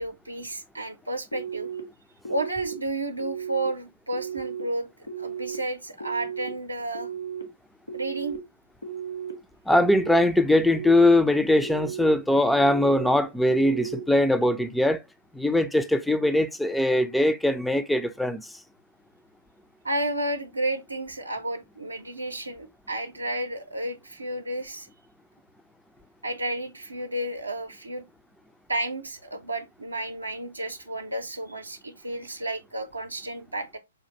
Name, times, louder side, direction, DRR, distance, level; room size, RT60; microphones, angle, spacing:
voice 1, 0.0-1.7 2.3-4.9 5.2-7.1 7.9-8.4 19.8-24.9 26.2-28.0 28.7-33.8, right 1 dB, 80° right, 0.6 m, -32 dB
sound 1, 1.3-1.8 2.3-2.7 3.2-3.7 4.1-4.6 5.1-5.6 6.0-6.5 6.9-7.4 7.9-8.4 8.8-9.3 9.8-10.2 10.7-11.2 11.6-12.1 12.6-13.1 13.5-14.0, right 7 dB, 60° left, 1.1 m, -35 dB
voice 2, 9.7-15.0 15.3-18.5, left 1 dB, ahead, 0.4 m, -21 dB
5.0 x 2.5 x 2.8 m
figure-of-eight pair, 120°, 0 cm